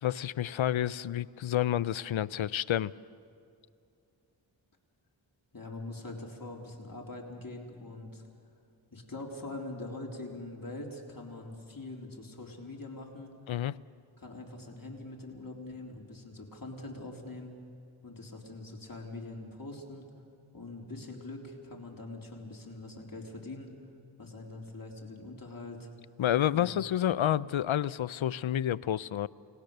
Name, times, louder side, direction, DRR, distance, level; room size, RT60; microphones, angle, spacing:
voice 1, 0.0-2.9 13.5-13.8 26.2-29.3, left 11 dB, 80° left, 19 dB, 0.6 m, -29 dB
voice 2, 5.5-8.2 8.9-13.3 14.2-17.5 18.0-20.1 20.5-23.7 24.2-25.9 26.5-26.8, left 2 dB, 45° left, 0 dB, 3.6 m, -43 dB
29.5 x 19.0 x 6.7 m, 2.5 s
wide cardioid pair, 65°, 46 cm